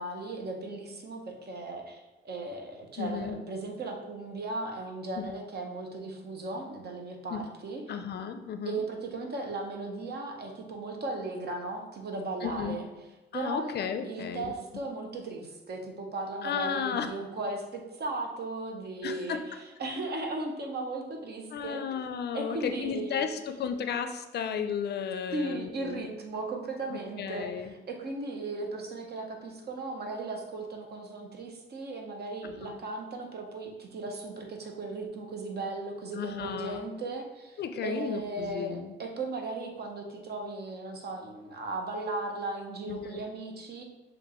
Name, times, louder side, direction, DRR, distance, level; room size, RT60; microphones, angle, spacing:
voice 1, 0.0-8.0 8.6-12.9 13.3-13.7 14.0-19.4 19.8-21.8 22.3-23.3 25.3-43.8, right 2 dB, 55° right, 2 dB, 0.9 m, -36 dB
voice 2, 3.0-3.4 5.2-5.3 7.3-7.5 7.9-8.8 12.4-12.8 13.3-14.8 16.4-17.1 19.0-19.5 21.5-26.1 26.9-27.7 32.4-32.8 36.1-36.8 37.6-38.9 42.9-43.2, left 7 dB, 55° left, 8 dB, 0.4 m, -34 dB
6.8 x 2.5 x 3.0 m, 1.1 s
cardioid pair, 90°, 20 cm